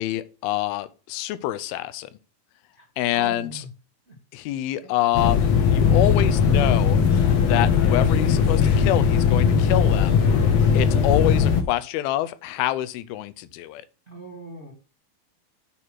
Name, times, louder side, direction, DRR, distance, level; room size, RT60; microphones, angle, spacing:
voice 1, 0.0-2.1 3.0-3.7 4.3-7.0 7.4-10.2 10.7-13.9, left 14 dB, 90° left, 2.5 m, -26 dB
voice 2, 3.1-3.7 4.1-4.2 14.1-14.7, right 2 dB, 45° right, 0.8 m, -40 dB
sound 1, 5.1-11.6, left 6 dB, 70° left, 1.6 m, -19 dB
8.7 x 4.7 x 5.7 m
omnidirectional pair, 4.2 m